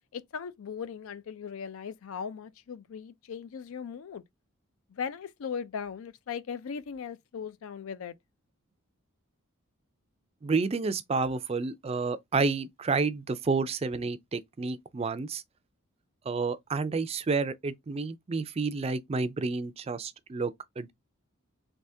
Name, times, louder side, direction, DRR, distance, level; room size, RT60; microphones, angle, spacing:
voice 1, 0.1-4.2 4.9-8.1, left 6 dB, 75° left, 0.4 m, -38 dB
voice 2, 10.4-15.4 16.3-20.9, right 4 dB, 30° right, 0.3 m, -30 dB
3.4 x 3.3 x 2.6 m
head